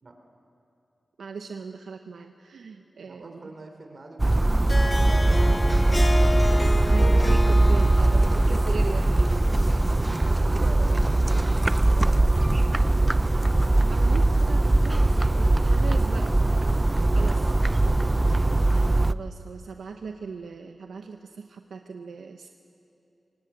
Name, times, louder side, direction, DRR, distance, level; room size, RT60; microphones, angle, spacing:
voice 1, 1.2-3.5 6.7-9.4 10.4-10.7 13.8-16.5 17.1-17.8 19.1-22.5, right 5 dB, 90° right, 5 dB, 0.8 m, -39 dB
voice 2, 3.0-6.5 10.0-13.6 17.5-18.6, right 2 dB, 50° right, 4 dB, 3.9 m, -45 dB
sound 1, 4.2-19.1, right 2 dB, 25° right, 0.5 m, -21 dB
Harp, 4.5-10.0, left 1 dB, 25° left, 1.0 m, -31 dB
24.5 x 20.0 x 8.7 m, 2.7 s
cardioid pair, 65°, 0 cm